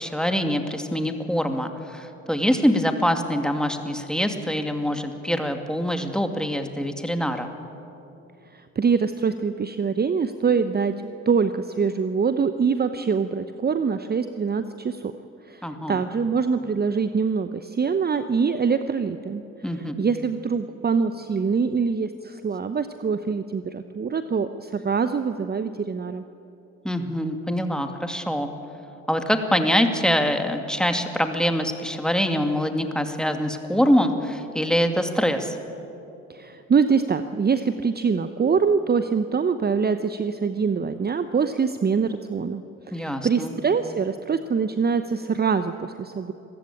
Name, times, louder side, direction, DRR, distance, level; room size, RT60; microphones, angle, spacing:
voice 1, 0.0-7.5 15.6-16.0 19.6-20.0 26.8-28.5 29.1-35.6 42.9-43.5, equal, ahead, 6 dB, 2.4 m, -24 dB
voice 2, 8.5-10.9 11.3-15.1 15.5-19.4 19.7-26.2 36.3-46.3, right 5 dB, 25° right, 10 dB, 0.9 m, -24 dB
26.0 x 15.0 x 8.7 m, 2.9 s
hypercardioid pair, 50°, 37 cm